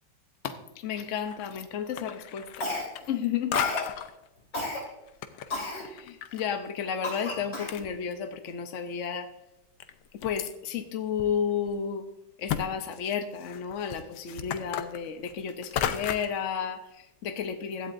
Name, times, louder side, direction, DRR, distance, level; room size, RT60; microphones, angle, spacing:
voice 1, 0.4-2.7 3.1-3.6 5.8-9.3 10.2-12.0 12.4-17.9, left 7 dB, 70° left, 7 dB, 0.7 m, -32 dB
sound 1, 1.2-1.6 1.9-3.3 3.5-4.1 4.8-6.4 6.7-6.8 7.4-7.5 7.7-8.5 9.0-9.1 9.8-10.5 11.2-11.3 11.7-11.8 12.5-12.6 12.9-16.4, left 10 dB, 90° left, 1.6 m, -34 dB
Cough, 2.6-3.1 3.5-3.9 4.5-4.8 5.5-5.9 6.4-6.5 7.0-7.8, left 2 dB, 30° left, 2.9 m, -33 dB
16.0 x 11.5 x 2.6 m, 0.94 s
omnidirectional pair, 2.2 m